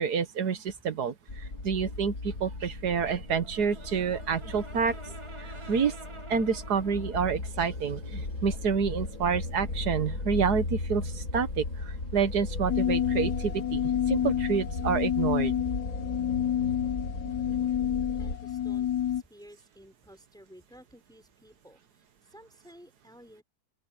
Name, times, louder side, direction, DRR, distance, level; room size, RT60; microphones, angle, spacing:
voice 1, 0.0-5.1 5.4-6.0 6.3-15.6, right 6 dB, 80° right, 1.8 m, -29 dB
sound 1, 1.3-18.4, left 2 dB, 65° left, 4.2 m, -36 dB
Brass instrument, 3.2-7.4, right 2 dB, 20° right, 1.3 m, -48 dB
sound 2, 12.7-19.2, left 10 dB, 80° left, 1.3 m, -29 dB
voice 2, 17.2-17.7 18.2-23.4, equal, ahead, 5.9 m, -54 dB
open air
omnidirectional pair, 1.7 m